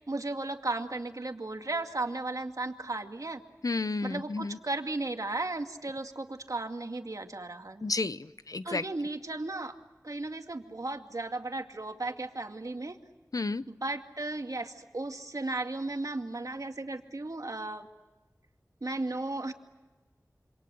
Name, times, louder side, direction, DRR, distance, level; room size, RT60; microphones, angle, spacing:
voice 1, 0.1-3.4 4.0-7.8 8.6-9.8 10.0-13.0 13.7-17.9 18.8-19.5, right 2 dB, 60° right, 5 dB, 2.3 m, -35 dB
voice 2, 3.6-4.6 7.8-8.8 13.3-13.6, left 3 dB, 70° left, 14 dB, 0.8 m, -31 dB
27.5 x 26.5 x 7.8 m, 1.2 s
wide cardioid pair, 45°, 6 cm